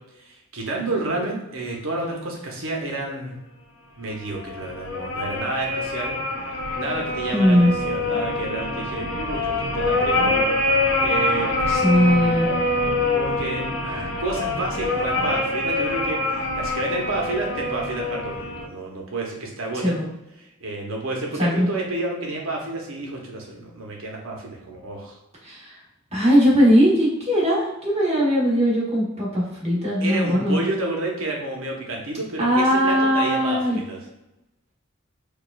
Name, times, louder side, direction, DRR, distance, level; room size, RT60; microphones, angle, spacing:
voice 1, 0.2-3.4 4.0-6.1 6.7-10.3 11.0-11.5 13.1-16.2 16.5-20.0 20.4-25.2 30.0-34.0, right 2 dB, 80° right, -1 dB, 0.8 m, -30 dB
sound 1, 4.3-18.7, left 2 dB, 70° left, 0.7 m, -25 dB
voice 2, 7.3-7.7 11.7-12.5 19.8-20.0 21.4-21.7 25.4-25.8 26.1-30.6 32.4-33.8, equal, 30° right, -5 dB, 1.1 m, -19 dB
4.5 x 2.4 x 2.3 m, 0.93 s
head